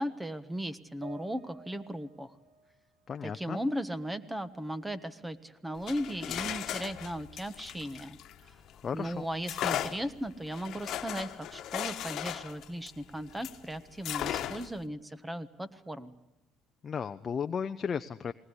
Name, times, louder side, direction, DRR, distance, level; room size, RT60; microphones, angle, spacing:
voice 1, 0.0-2.3 3.2-8.2 8.4-8.6 8.9-16.1, equal, 10° right, 13 dB, 1.4 m, -37 dB
sound 1, 1.0-4.4 4.8-5.8, right 5 dB, 65° right, 1.5 m, -55 dB
voice 2, 3.1-3.6 8.8-9.2 16.8-18.3, left 6 dB, 35° left, 9 dB, 0.8 m, -34 dB
sound 2, 5.7-8.8 9.4-13.6 14.0-14.8, left 11 dB, 60° left, 1.4 m, -37 dB
20.5 x 19.0 x 9.8 m, 0.86 s
cardioid pair, 100°, 0 cm